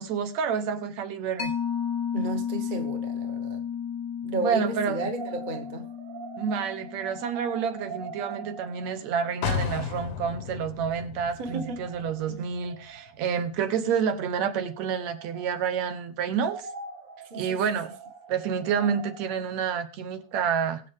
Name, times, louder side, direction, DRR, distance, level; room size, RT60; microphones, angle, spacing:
voice 1, 0.0-1.5 4.4-5.1 6.4-16.7 17.3-17.9 18.3-20.8, right 7 dB, 75° right, 2.1 m, -29 dB
Mallet percussion, 1.4-8.5, left 8 dB, 90° left, 2.3 m, -34 dB
voice 2, 2.1-3.6 4.2-5.9 11.4-11.8 12.3-12.4 17.3-17.6, right 2 dB, 35° right, 0.7 m, -33 dB
sound 1, 5.2-10.6 10.8-10.9 11.2-13.5 14.3-16.0 16.3-20.3, right 5 dB, 55° right, 2.1 m, -44 dB
sound 2, 9.4-13.2 13.5-13.6, left 7 dB, 65° left, 1.2 m, -34 dB
21.5 x 7.6 x 3.5 m
omnidirectional pair, 3.3 m